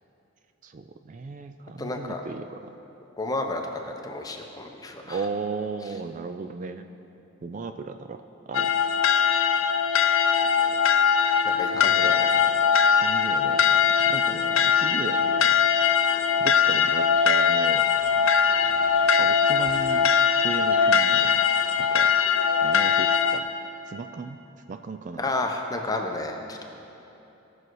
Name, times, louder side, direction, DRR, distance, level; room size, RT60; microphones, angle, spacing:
voice 1, 0.6-2.7 5.1-6.9 7.4-8.8 11.7-12.5 12.9-15.5 16.4-17.9 19.2-20.1 20.4-21.4 21.8-22.1 22.6-23.5 23.9-24.4 24.7-25.3, right 4 dB, 40° right, 8 dB, 0.3 m, -36 dB
voice 2, 1.8-2.2 3.2-5.2 11.4-12.3 25.2-26.6, left 2 dB, 20° left, 3 dB, 0.8 m, -31 dB
sound 1, 8.5-23.4, left 6 dB, 85° left, 0.5 m, -21 dB
17.5 x 6.3 x 4.7 m, 2.9 s
head